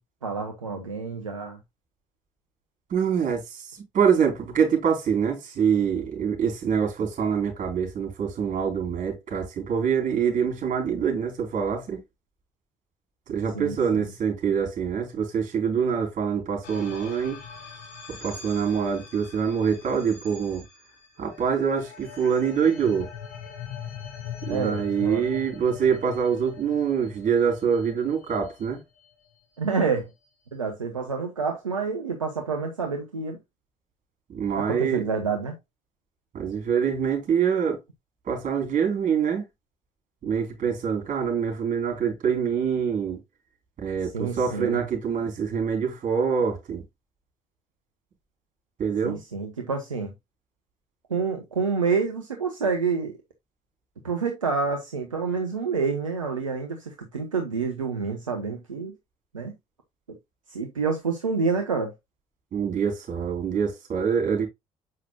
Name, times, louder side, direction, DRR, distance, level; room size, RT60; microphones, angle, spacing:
voice 1, 0.2-1.6 13.5-14.1 24.5-25.2 29.6-30.1 30.5-33.4 34.5-35.5 44.1-44.8 49.0-50.1 51.1-53.2 54.0-58.9 59.3-59.5 60.1-60.2 60.5-61.9, right 5 dB, 90° right, 0.8 m, -28 dB
voice 2, 2.9-3.6 3.9-12.0 13.3-17.4 18.1-20.6 21.2-23.1 24.4-28.8 34.3-35.0 36.3-37.8 38.3-39.4 40.2-43.2 43.8-46.8 48.8-49.2 62.5-64.5, right 7 dB, 50° right, 4.0 m, -25 dB
sound 1, 16.6-29.1, left 7 dB, 65° left, 4.2 m, -42 dB
7.5 x 5.8 x 2.3 m
figure-of-eight pair, 50°, 17 cm